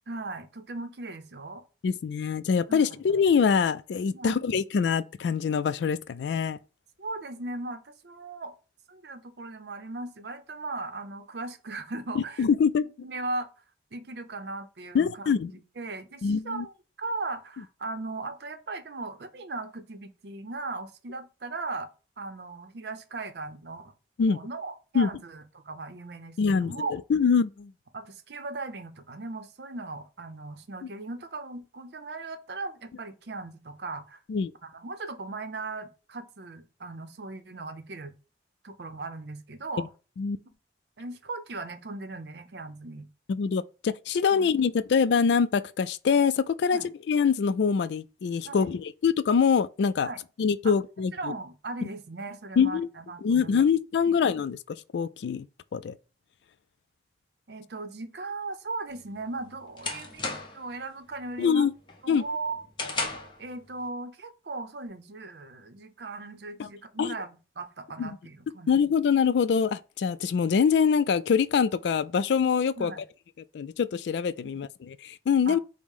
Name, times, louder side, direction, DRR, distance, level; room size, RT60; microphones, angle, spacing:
voice 1, 0.1-1.6 2.7-2.9 4.1-4.4 7.0-8.5 8.9-12.5 13.0-13.5 13.9-16.7 17.0-21.9 22.2-23.9 24.3-26.9 27.9-34.2 34.6-38.1 38.6-39.9 41.0-43.1 44.3-44.8 46.7-46.9 48.4-48.7 50.0-50.2 50.6-50.8 51.1-53.7 54.1-54.2 57.5-60.3 60.5-61.7 62.0-62.6 63.4-68.7 72.8-73.0 74.5-74.6 75.5-75.6, right 3 dB, 70° right, 0.6 m, -38 dB
voice 2, 1.8-6.6 12.4-12.8 14.9-15.5 16.2-16.7 24.2-24.4 24.9-25.1 26.4-27.7 34.3-34.5 40.2-40.4 43.3-46.8 47.1-50.1 50.4-51.3 52.6-52.9 53.2-55.5 55.7-55.9 61.4-61.7 62.1-62.2 66.6-66.7 67.0-67.1 68.0-68.1 68.7-73.0 73.5-75.6, left 6 dB, 75° left, 0.3 m, -24 dB
sound 1, 58.9-60.7 61.1-61.5 61.9-63.4, left 3 dB, 25° left, 0.7 m, -35 dB
5.3 x 2.1 x 4.8 m
head